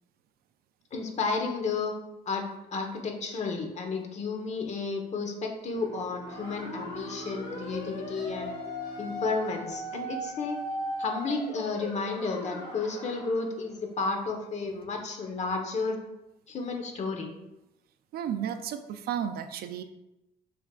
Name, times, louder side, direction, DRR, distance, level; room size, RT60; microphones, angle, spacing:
voice 1, 0.9-2.0 2.3-8.5 9.0-10.6 11.0-16.0 16.5-17.3, left 4 dB, 40° left, 3 dB, 1.3 m, -32 dB
Bowed string instrument, 5.6-10.6, right 4 dB, 50° right, 1.1 m, -46 dB
sound 1, 6.3-13.5, left 1 dB, 85° left, 1.9 m, -38 dB
voice 2, 18.1-19.8, right 9 dB, 65° right, 9 dB, 0.5 m, -33 dB
6.6 x 5.9 x 2.5 m, 0.93 s
cardioid pair, 110°, 17 cm